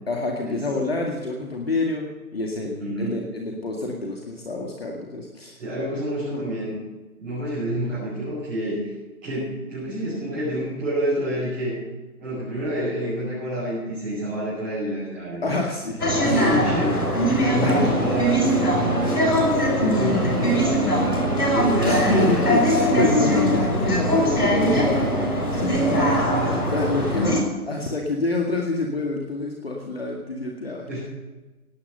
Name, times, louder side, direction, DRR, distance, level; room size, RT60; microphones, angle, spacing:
voice 1, 0.1-2.1 2.3-5.6 6.3-6.4 15.4-16.5 17.6-17.9 21.9-27.4 27.7-31.0, left 3 dB, 40° left, 0 dB, 2.2 m, -27 dB
voice 2, 2.8-3.2 5.6-6.7 7.2-8.9 9.2-11.7 12.2-15.5 16.2-19.3 19.7-21.0 21.3-23.2 25.9-26.7 30.9-31.0, equal, 10° right, -14 dB, 6.1 m, -28 dB
sound 1, 16.0-27.4, equal, 90° left, 6.2 m, -21 dB
17.5 x 10.5 x 6.7 m, 1.2 s
figure-of-eight pair, 170°, 44 cm